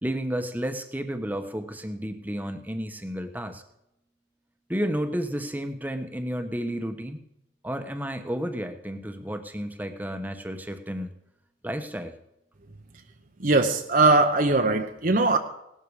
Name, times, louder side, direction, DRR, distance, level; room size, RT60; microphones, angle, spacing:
voice 1, 0.0-3.6 4.7-7.3 7.6-11.1 11.6-12.1, equal, 10° right, 7 dB, 1.1 m, -32 dB
voice 2, 13.4-15.4, right 3 dB, 50° right, 5 dB, 0.9 m, -20 dB
17.5 x 12.5 x 4.9 m, 0.83 s
head